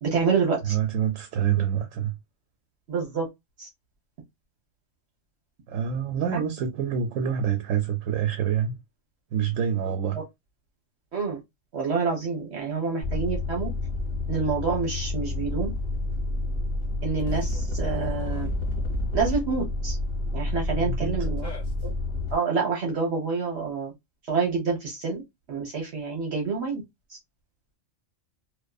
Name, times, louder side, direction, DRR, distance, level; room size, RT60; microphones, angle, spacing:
voice 1, 0.0-0.8 2.9-3.3 3.6-3.7 6.3-6.4 10.1-10.2 11.1-11.4 11.7-13.7 14.3-15.7 17.0-18.5 19.1-20.0 20.3-21.5 22.3-23.9 24.3-25.2 25.5-26.8, right 5 dB, 60° right, 1.1 m, -27 dB
voice 2, 0.6-2.1 5.7-8.8 9.3-10.2 20.7-21.2, right 8 dB, 85° right, 0.9 m, -26 dB
sound 1, 13.0-22.3, left 2 dB, 35° left, 1.2 m, -29 dB
2.5 x 2.5 x 2.2 m
omnidirectional pair, 1.3 m